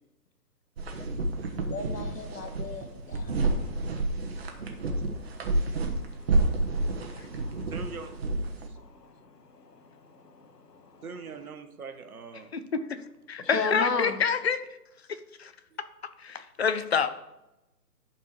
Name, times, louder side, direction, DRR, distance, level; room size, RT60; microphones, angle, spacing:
sound 1, 0.8-8.7, right 2 dB, 40° right, 1.2 m, -29 dB
voice 1, 1.6-7.7 8.7-11.0 13.4-14.2, left 4 dB, 75° left, 7 dB, 1.5 m, -38 dB
voice 2, 7.7-8.1 8.7-8.8 11.0-12.5, right 5 dB, 60° right, 7 dB, 1.2 m, -41 dB
voice 3, 12.5-13.0 13.3-14.6 15.1-15.5 16.2-17.1, left 6 dB, 40° left, 11 dB, 0.6 m, -28 dB
11.5 x 4.6 x 4.7 m, 0.94 s
figure-of-eight pair, 150°, 49 cm